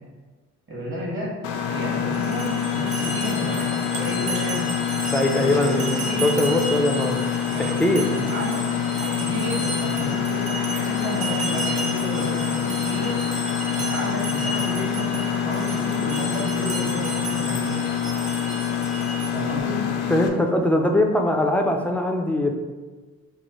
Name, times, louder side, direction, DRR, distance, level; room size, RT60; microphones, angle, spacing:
voice 1, 0.7-1.4 1.7-4.7 5.3-6.2 7.5-7.8 8.1-13.2 13.7-17.9 19.3-19.8, equal, 40° right, -3 dB, 1.2 m, -31 dB
Mechanisms, 1.4-20.3, left 8 dB, 85° left, 0.5 m, -26 dB
sound 1, 1.5-17.2, right 3 dB, 60° right, 0.7 m, -42 dB
sound 2, 2.1-19.6, right 2 dB, 25° right, 0.7 m, -34 dB
voice 2, 5.1-7.2 7.6-8.0 20.1-22.5, left 1 dB, 5° left, 2 dB, 0.3 m, -21 dB
3.1 x 2.1 x 4.1 m, 1.3 s
cardioid pair, 90°, 30 cm